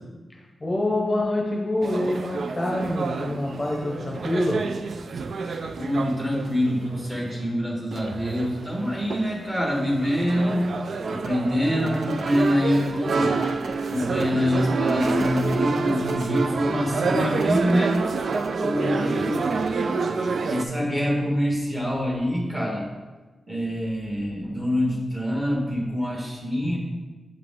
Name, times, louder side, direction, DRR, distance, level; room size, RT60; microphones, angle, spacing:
voice 1, 0.3-4.6 16.9-17.2 19.1-19.3, left 1 dB, 20° left, -1 dB, 0.8 m, -26 dB
sound 1, 1.8-7.5 7.9-20.6, right 4 dB, 55° right, 0.3 m, -28 dB
voice 2, 5.8-10.7 11.1-13.4 13.9-18.0 18.6-19.4 20.5-22.9 23.5-26.8, equal, 15° right, -2 dB, 1.4 m, -25 dB
sound 2, 11.2-11.3 11.8-14.2 14.9-16.4 17.4-18.5 19.5-19.7, right 3 dB, 75° right, 0.7 m, -39 dB
8.0 x 4.9 x 3.6 m, 1.2 s
wide cardioid pair, 150°, 0 cm